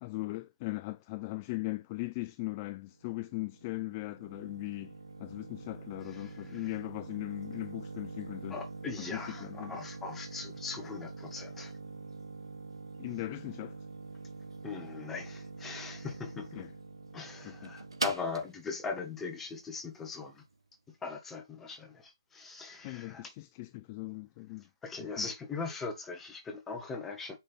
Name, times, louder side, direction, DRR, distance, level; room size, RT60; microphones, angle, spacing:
voice 1, 0.0-4.9 5.2-8.6 9.0-9.8 13.0-13.8 16.5-16.7 17.4-17.7 22.8-24.7 25.0-25.3, left 21 dB, 25° left, 0.4 m, -39 dB
sound 1, 2.9-20.5, right 3 dB, 85° right, 1.8 m, -44 dB
voice 2, 8.5-11.7 14.6-16.6 17.1-20.4 21.0-23.3 24.8-27.4, left 4 dB, 10° left, 1.7 m, -40 dB
8.0 x 5.8 x 3.5 m
figure-of-eight pair, 150°, 3 cm